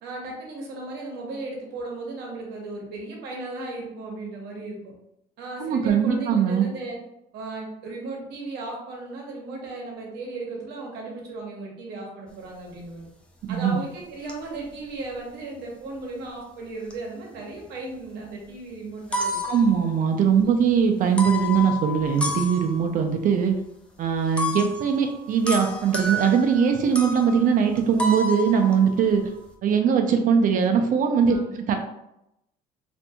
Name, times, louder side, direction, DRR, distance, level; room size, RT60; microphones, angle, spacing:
voice 1, 0.0-4.9 5.4-7.0 7.3-13.1 13.5-19.5 20.4-20.6 31.3-31.8, right 2 dB, 80° right, -1 dB, 0.8 m, -36 dB
voice 2, 5.6-6.7 13.5-13.8 19.5-23.6 24.0-29.2 29.6-31.8, right 7 dB, 55° right, 5 dB, 0.4 m, -21 dB
sound 1, 13.3-13.8 14.3-15.7 16.6-17.8 18.1-18.2 18.9-20.4 21.1-23.1 24.4-29.5, left 1 dB, 5° left, 0.4 m, -31 dB
2.7 x 2.5 x 2.2 m, 0.84 s
cardioid pair, 110°, 17 cm